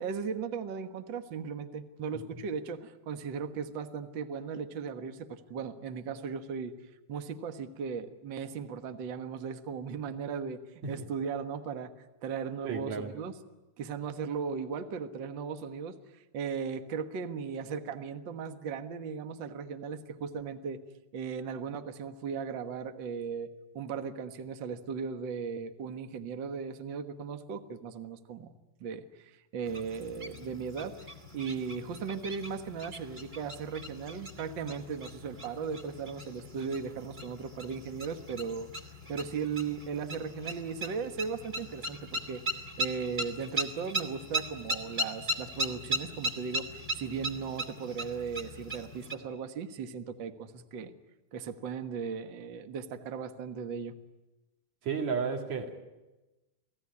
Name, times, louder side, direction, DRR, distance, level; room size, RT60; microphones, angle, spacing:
voice 1, 0.0-6.8 7.1-13.3 13.8-20.8 21.1-28.5 28.8-31.0 31.3-38.7 39.1-50.9 51.3-53.9, right 6 dB, 85° right, 8 dB, 1.0 m, -37 dB
voice 2, 12.6-13.1 54.8-55.8, right 5 dB, 50° right, 3 dB, 3.5 m, -33 dB
sound 1, 29.7-49.2, right 1 dB, 20° right, 2.0 m, -38 dB
29.0 x 18.5 x 9.7 m, 1.1 s
omnidirectional pair, 4.3 m